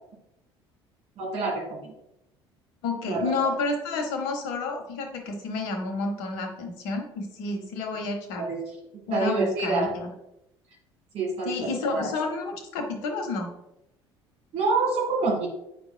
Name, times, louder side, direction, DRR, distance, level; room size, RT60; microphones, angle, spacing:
voice 1, 1.2-1.9 3.1-3.5 8.5-8.6 9.1-9.9 11.1-12.1 14.5-15.5, right 3 dB, 50° right, -1 dB, 2.1 m, -27 dB
voice 2, 2.8-8.5 9.1-10.1 11.4-13.5, left 3 dB, 65° left, 4 dB, 1.0 m, -30 dB
8.5 x 4.8 x 2.3 m, 0.85 s
figure-of-eight pair, 55°, 14 cm